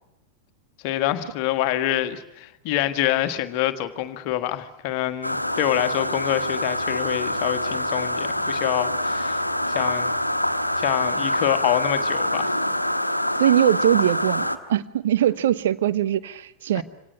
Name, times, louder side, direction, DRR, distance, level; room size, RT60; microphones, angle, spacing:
voice 1, 0.8-10.1 10.8-12.5 16.7-16.8, left 13 dB, 45° left, 1.6 m, -26 dB
sound 1, 5.2-14.6, left 1 dB, 85° left, 1.2 m, -25 dB
voice 2, 13.4-16.8, right 11 dB, 60° right, 0.9 m, -21 dB
26.0 x 18.0 x 9.9 m
figure-of-eight pair, 90°, 0 cm